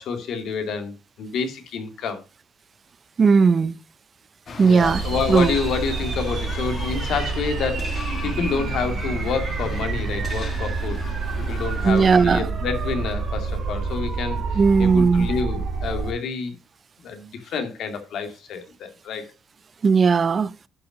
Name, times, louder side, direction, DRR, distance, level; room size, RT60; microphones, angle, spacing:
voice 1, 0.0-2.2 4.6-11.0 11.5-16.5 17.0-19.3, left 5 dB, 75° left, 2.2 m, -28 dB
voice 2, 3.2-3.8 4.6-5.0 5.3-5.5 11.8-12.5 14.5-15.3 19.8-20.5, right 5 dB, 40° right, 0.5 m, -17 dB
sound 1, 4.5-12.3, left 4 dB, 50° left, 2.0 m, -37 dB
sound 2, 4.8-16.1, right 4 dB, 60° right, 3.6 m, -28 dB
10.5 x 5.8 x 5.0 m
cardioid pair, 90°, 0 cm